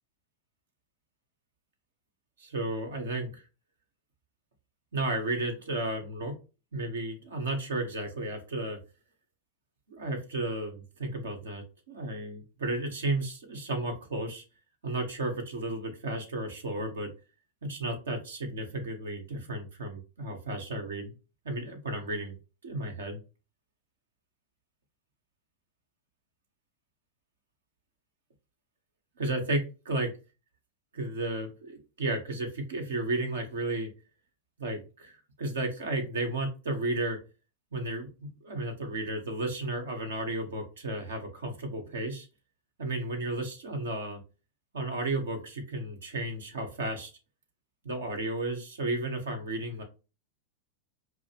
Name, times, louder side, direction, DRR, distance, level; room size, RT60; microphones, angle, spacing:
voice 1, 2.4-3.4 4.9-6.3 6.7-8.8 9.9-14.4 14.8-17.1 17.6-21.1 21.4-22.3 22.6-23.2 29.2-30.1 30.9-33.9 34.6-37.2 37.7-42.3 42.8-44.2 44.7-47.1 47.8-49.8, right 2 dB, 75° right, 5 dB, 1.4 m, -33 dB
5.2 x 2.1 x 3.4 m, 0.30 s
hypercardioid pair, 100°, 0 cm